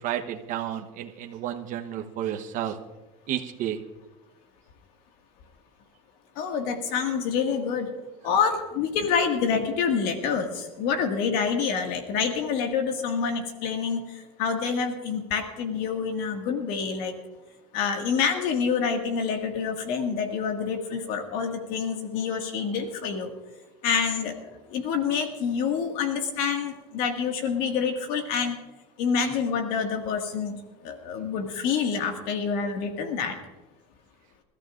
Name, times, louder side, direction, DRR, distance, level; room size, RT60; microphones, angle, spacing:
voice 1, 0.0-2.8 3.3-3.8, right 11 dB, 55° right, 3 dB, 1.0 m, -31 dB
voice 2, 6.4-7.9 8.2-17.1 17.7-23.3 23.8-28.6 29.0-30.6 30.8-33.4, left 6 dB, 70° left, 3 dB, 2.0 m, -27 dB
28.0 x 13.5 x 2.5 m, 1.1 s
supercardioid pair, 120°, 16 cm